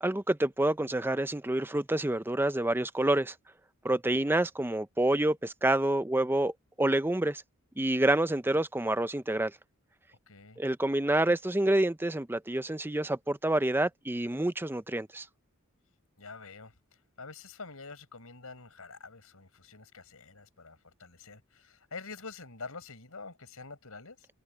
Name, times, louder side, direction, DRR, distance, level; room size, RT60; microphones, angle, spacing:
voice 1, 0.0-3.3 3.8-7.4 7.8-9.5 10.6-15.3, right 1 dB, 10° right, 0.6 m, -28 dB
voice 2, 10.3-10.6 16.2-16.7 17.2-24.3, left 4 dB, 70° left, 5.8 m, -46 dB
head